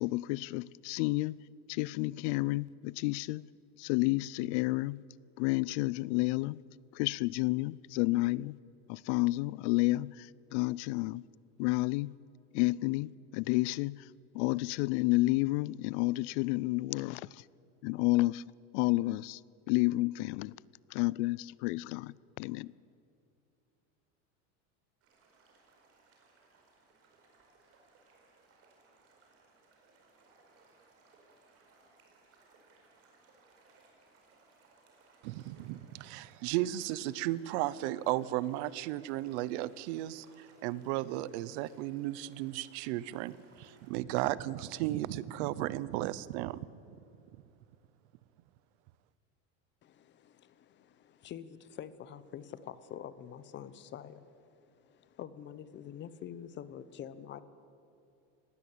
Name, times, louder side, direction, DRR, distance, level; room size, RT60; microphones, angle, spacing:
voice 1, 0.0-1.4 1.7-3.4 3.8-5.0 5.4-6.6 6.9-8.6 8.9-11.2 11.6-12.1 12.5-14.0 14.3-17.4 17.8-18.4 18.7-19.4 19.7-20.5 20.9-22.7, left 21 dB, 70° left, 0.5 m, -30 dB
sound 1, 25.0-43.9, right 3 dB, 40° right, 4.8 m, -64 dB
voice 2, 35.2-46.7, right 15 dB, 65° right, 0.8 m, -35 dB
voice 3, 49.8-57.4, left 9 dB, 30° left, 0.9 m, -46 dB
19.5 x 17.0 x 8.6 m
cardioid pair, 155°, 36 cm